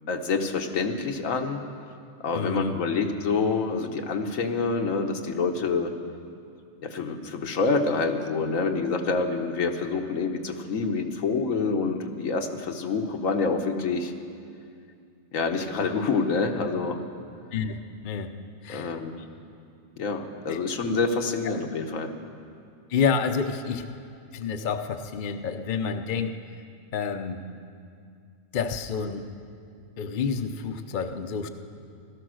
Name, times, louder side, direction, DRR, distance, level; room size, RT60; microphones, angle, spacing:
voice 1, 0.1-1.6 2.2-5.9 6.8-14.1 15.3-17.0 18.7-19.1 20.0-22.1, left 4 dB, 85° left, 4 dB, 1.4 m, -27 dB
voice 2, 2.3-2.7 17.5-17.8 18.0-18.3 18.6-19.0 20.5-20.6 22.9-23.9 24.3-26.4 26.9-27.4 28.5-29.3 30.0-31.5, left 6 dB, 45° left, 7 dB, 0.7 m, -28 dB
16.5 x 13.0 x 6.3 m, 2.4 s
omnidirectional pair, 1.4 m